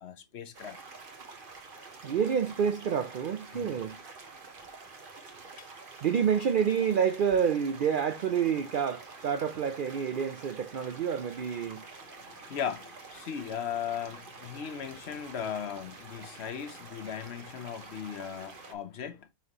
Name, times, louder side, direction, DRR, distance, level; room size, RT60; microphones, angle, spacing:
voice 1, 0.0-0.8 3.5-3.7 5.6-5.7 12.0-19.3, left 8 dB, 60° left, 0.9 m, -38 dB
sound 1, 0.5-18.7, right 4 dB, 40° right, 1.2 m, -48 dB
voice 2, 2.0-4.0 5.3-5.4 6.0-11.8, right 7 dB, 70° right, 0.5 m, -28 dB
5.9 x 5.6 x 2.9 m
omnidirectional pair, 1.4 m